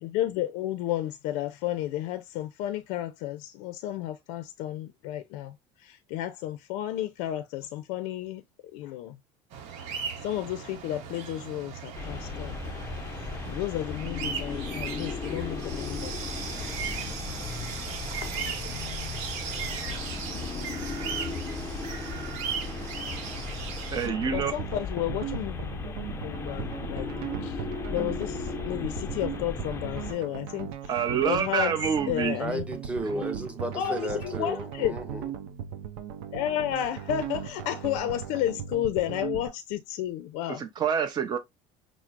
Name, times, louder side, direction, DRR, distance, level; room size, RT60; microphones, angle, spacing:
voice 1, 0.0-8.4 8.7-9.2 10.2-12.6 13.5-16.1 17.0-17.3 18.2-19.2 24.2-27.1 27.4-30.9 31.2-31.8 32.1-32.6 33.7-35.0 36.3-40.6, left 12 dB, 75° left, 0.5 m, -32 dB
sound 1, 9.5-24.1, right 7 dB, 65° right, 0.9 m, -37 dB
sound 2, 11.9-30.1, left 4 dB, 20° left, 0.5 m, -36 dB
voice 2, 23.9-24.6 30.9-32.4 40.6-41.4, right 7 dB, 30° right, 0.7 m, -27 dB
sound 3, 24.0-39.5, right 8 dB, 90° right, 0.5 m, -38 dB
voice 3, 32.4-35.3, right 1 dB, 10° right, 0.8 m, -33 dB
5.8 x 2.0 x 2.4 m
cardioid pair, 130°, 13 cm